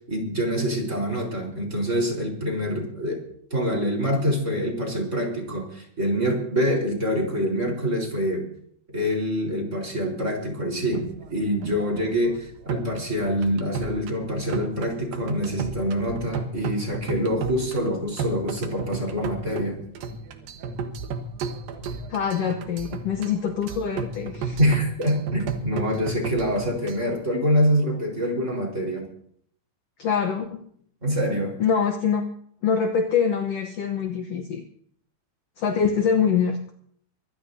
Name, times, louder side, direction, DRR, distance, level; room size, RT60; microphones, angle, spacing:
voice 1, 0.1-3.2 3.5-8.5 8.9-19.8 24.6-29.1 31.0-31.6, equal, 20° right, 1 dB, 4.4 m, -25 dB
sound 1, 10.8-27.1, right 5 dB, 75° right, 3.0 m, -34 dB
voice 2, 22.1-24.6 30.0-30.7 31.6-32.2 32.6-34.6 35.6-36.6, left 6 dB, 75° left, 4 dB, 1.5 m, -24 dB
24.5 x 15.5 x 2.8 m, 0.65 s
omnidirectional pair, 4.3 m